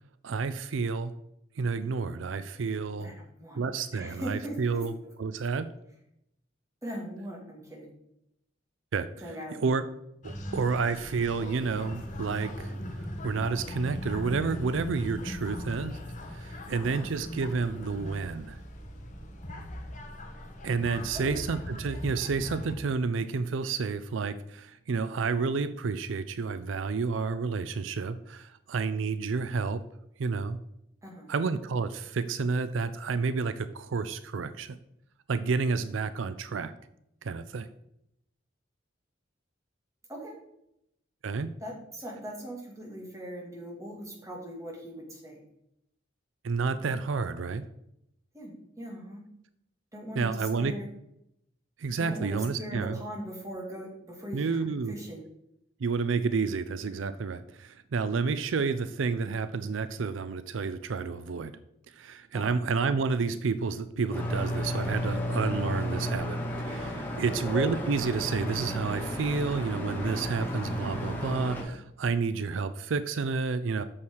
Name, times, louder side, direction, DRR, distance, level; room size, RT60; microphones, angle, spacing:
voice 1, 0.2-1.1 1.6-3.1 3.5-4.9 5.2-5.7 8.9-9.1 9.5-9.8 10.2-16.0 16.3-18.6 20.6-29.8 30.2-30.6 31.3-34.8 35.3-36.7 37.2-37.7 41.2-41.5 46.4-47.6 50.2-50.7 51.8-53.0 54.3-55.0 55.8-61.5 61.9-73.8, right 4 dB, 80° right, 12 dB, 0.5 m, -30 dB
voice 2, 3.0-3.6 3.9-4.9 6.8-7.9 9.2-9.7 16.9-17.1 21.1-21.4 31.0-31.3 40.1-40.3 41.6-45.4 48.3-49.3 49.9-50.9 52.0-54.5 54.9-55.2 62.3-62.6 67.1-67.3, right 1 dB, 15° right, -1 dB, 2.3 m, -40 dB
sound 1, 10.2-22.8, left 1 dB, 40° left, 1.3 m, -39 dB
sound 2, 64.1-71.6, equal, 10° left, 1.9 m, -32 dB
8.6 x 6.5 x 4.7 m, 0.79 s
head